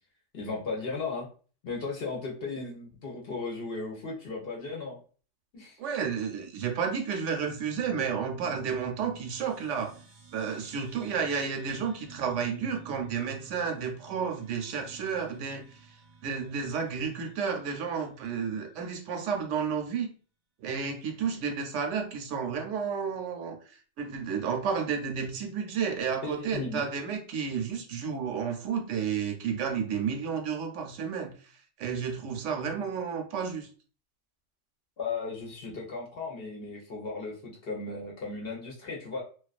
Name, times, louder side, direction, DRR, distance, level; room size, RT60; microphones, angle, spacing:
voice 1, 0.3-1.3 1.6-5.0 5.5-5.8 26.2-26.8 35.0-39.2, left 4 dB, 55° left, -1 dB, 0.8 m, -36 dB
voice 2, 5.8-10.0 10.3-15.7 16.2-20.1 20.6-23.6 24.0-31.5 31.8-33.7, right 6 dB, 75° right, 4 dB, 0.9 m, -31 dB
sound 1, 7.5-18.2, right 6 dB, 40° right, 0.7 m, -52 dB
2.3 x 2.3 x 2.3 m, 0.39 s
omnidirectional pair, 1.3 m